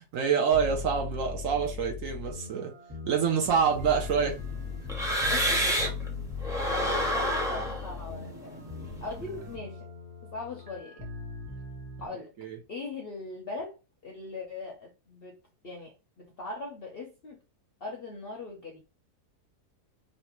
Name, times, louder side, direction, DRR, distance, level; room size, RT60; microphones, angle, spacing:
voice 1, 0.1-2.7 3.1-4.4 8.8-8.9 12.4-12.6, right 6 dB, 65° right, 0.9 m, -26 dB
sound 1, 0.5-12.1, left 5 dB, 30° right, 1.6 m, -39 dB
sound 2, 3.4-6.1 6.4-9.5, equal, 5° right, 0.4 m, -30 dB
voice 2, 5.3-5.8 6.4-8.6 9.0-9.9 10.2-11.1 12.0-12.3 12.7-13.8 14.0-15.4 15.6-17.4 17.8-18.8, left 3 dB, 60° left, 0.6 m, -40 dB
3.2 x 2.6 x 2.9 m
omnidirectional pair, 1.7 m